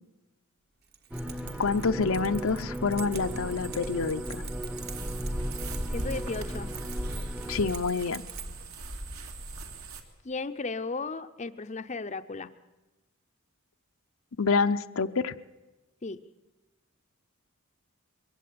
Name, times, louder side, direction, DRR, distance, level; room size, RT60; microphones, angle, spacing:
Keys jangling, 0.8-8.8, right 9 dB, 45° right, 1.4 m, -47 dB
sound 1, 1.1-7.7, equal, 5° right, 0.8 m, -37 dB
voice 1, 1.6-4.4 7.5-8.2 14.4-15.3, left 4 dB, 70° left, 9 dB, 0.7 m, -27 dB
sound 2, 3.1-10.0, right 1 dB, 75° right, 2.6 m, -38 dB
voice 2, 5.9-6.7 10.2-12.5 16.0-16.2, left 3 dB, 30° left, 9 dB, 0.6 m, -35 dB
22.5 x 16.5 x 8.5 m, 1.1 s
head